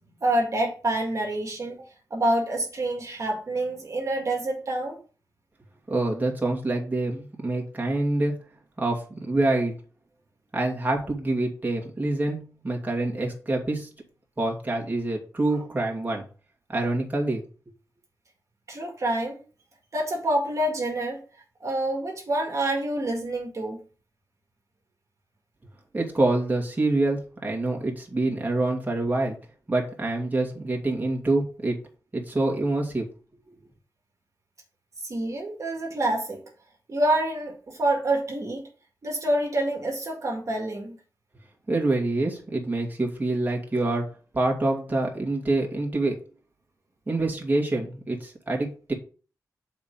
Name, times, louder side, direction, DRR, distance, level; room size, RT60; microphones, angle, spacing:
voice 1, 0.2-1.8 2.1-5.0 18.7-19.4 19.9-21.2 21.6-23.8 35.0-36.4 36.9-38.7 39.0-41.0, right 1 dB, 50° right, 1 dB, 2.0 m, -27 dB
voice 2, 5.9-8.3 8.8-9.7 10.5-13.9 14.4-16.2 16.7-17.4 25.9-29.4 29.7-31.8 32.1-33.1 41.7-44.0 44.3-46.2 47.1-48.9, right 2 dB, 25° right, -1 dB, 2.3 m, -26 dB
6.8 x 4.5 x 5.3 m, 0.38 s
wide cardioid pair, 85°, 7 cm